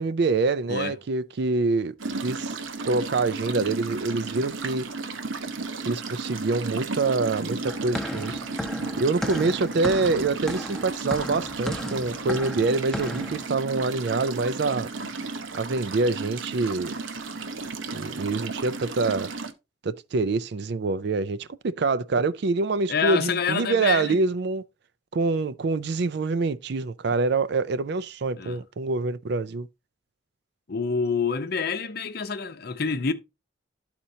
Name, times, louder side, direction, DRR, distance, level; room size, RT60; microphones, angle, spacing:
voice 1, 0.0-1.9 2.2-2.6 2.8-4.8 5.8-8.4 9.0-14.9 15.5-16.9 17.9-19.3 19.8-24.6 25.1-29.7, right 3 dB, 55° right, 0.4 m, -25 dB
sound 1, 2.0-19.5, right 3 dB, 80° right, 0.9 m, -34 dB
sound 2, 7.6-13.5, equal, ahead, 0.8 m, -34 dB
voice 2, 22.9-24.2 28.4-28.6 30.7-33.1, left 5 dB, 50° left, 0.7 m, -27 dB
12.5 x 4.4 x 2.7 m
head